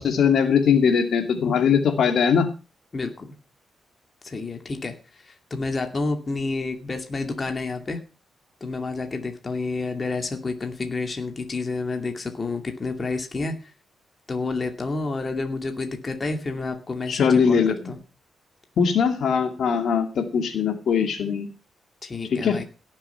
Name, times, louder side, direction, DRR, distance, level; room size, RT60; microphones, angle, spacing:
voice 1, 0.0-2.5 17.1-17.9 18.8-21.5 22.3-22.6, left 6 dB, 65° left, 7 dB, 2.3 m, -21 dB
voice 2, 2.9-3.3 4.2-8.0 8.6-13.5 14.3-18.0 22.0-22.6, left 3 dB, 30° left, 5 dB, 2.4 m, -29 dB
17.5 x 7.3 x 5.8 m, 0.31 s
wide cardioid pair, 135°, 0 cm